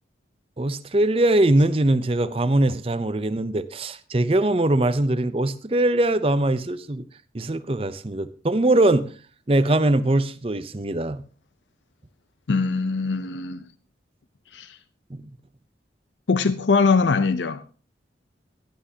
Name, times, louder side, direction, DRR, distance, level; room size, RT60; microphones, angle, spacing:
voice 1, 0.6-7.0 7.3-9.1 9.5-11.2 15.1-15.2, right 1 dB, 30° right, 0.6 m, -21 dB
voice 2, 12.5-13.6 14.5-14.8 16.3-17.6, left 4 dB, 90° left, 0.6 m, -22 dB
17.0 x 12.0 x 2.8 m
head